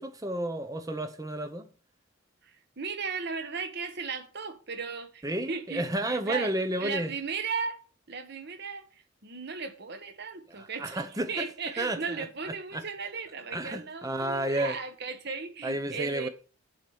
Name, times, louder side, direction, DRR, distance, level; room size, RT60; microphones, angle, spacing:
voice 1, 0.0-1.7 5.2-7.1 10.5-12.3 12.7-12.8 13.5-14.8 15.6-16.3, right 1 dB, 15° right, 0.8 m, -32 dB
voice 2, 2.4-6.5 6.8-7.8 8.1-8.8 9.2-11.0 11.3-16.3, right 5 dB, 50° right, 1.2 m, -36 dB
7.5 x 4.9 x 7.1 m
head